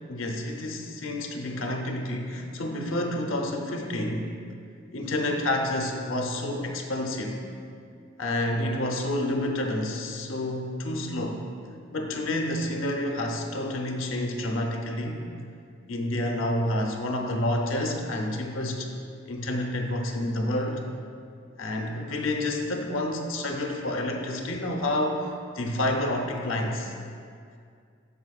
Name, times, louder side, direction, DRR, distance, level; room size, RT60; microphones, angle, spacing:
voice 1, 0.1-4.3 4.9-7.4 8.2-11.4 11.9-15.2 15.9-18.9 19.3-20.8 21.6-26.9, left 1 dB, 80° left, 2 dB, 0.8 m, -29 dB
12.5 x 5.0 x 2.4 m, 2.3 s
head